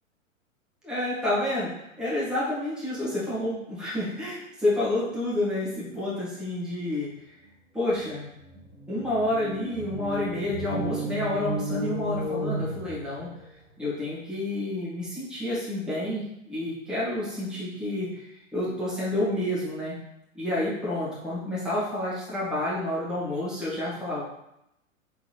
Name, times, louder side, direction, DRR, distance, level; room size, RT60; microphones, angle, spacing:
voice 1, 0.8-7.4 7.7-8.2 8.9-13.3 13.8-19.9 20.3-24.2, left 1 dB, ahead, -9 dB, 1.6 m, -29 dB
sound 1, 8.0-8.1 8.3-13.4, right 1 dB, 30° left, 1.6 m, -33 dB
3.8 x 3.5 x 3.2 m, 0.83 s
hypercardioid pair, 110°, 41 cm